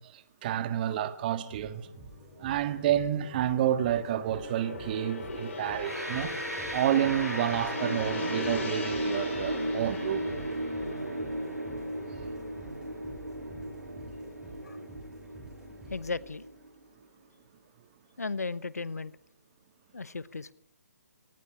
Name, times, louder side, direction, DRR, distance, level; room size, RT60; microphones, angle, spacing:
voice 1, 0.0-1.9 2.4-6.3 6.7-10.3, right 11 dB, 35° right, 1.7 m, -29 dB
Gong, 1.4-13.9 14.2-14.5, left 3 dB, 55° left, 7.5 m, -41 dB
sound 1, 1.5-16.8, right 1 dB, 5° right, 7.6 m, -50 dB
sound 2, 5.8-16.7, right 1 dB, 90° right, 5.7 m, -35 dB
voice 2, 15.9-16.4 18.2-19.2 19.9-20.5, left 4 dB, 75° left, 1.0 m, -35 dB
26.0 x 19.0 x 9.9 m
figure-of-eight pair, 135°, 8 cm